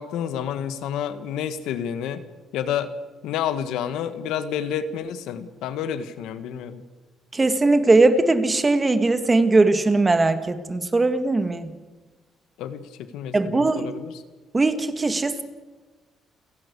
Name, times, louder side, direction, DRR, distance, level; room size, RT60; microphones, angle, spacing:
voice 1, 0.0-2.2 2.5-2.9 3.2-6.8 12.6-14.2, left 9 dB, 90° left, 11 dB, 1.5 m, -29 dB
voice 2, 7.3-11.7 13.3-13.9 14.5-15.4, right 3 dB, 20° right, 9 dB, 1.9 m, -20 dB
29.0 x 11.0 x 8.5 m, 1.3 s
cardioid pair, 110°, 0 cm